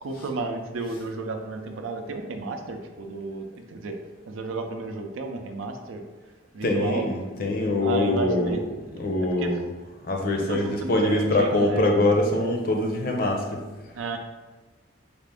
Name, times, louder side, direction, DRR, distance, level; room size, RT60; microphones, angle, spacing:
voice 1, 0.0-4.0 4.3-6.0 6.5-7.1 7.8-8.6 9.4-9.7 10.5-11.9 13.9-14.2, right 3 dB, 90° right, 5 dB, 0.5 m, -32 dB
voice 2, 6.6-8.6 8.9-9.6 10.1-13.6, left 1 dB, 50° left, 1 dB, 0.6 m, -23 dB
4.3 x 2.5 x 3.4 m, 1.2 s
head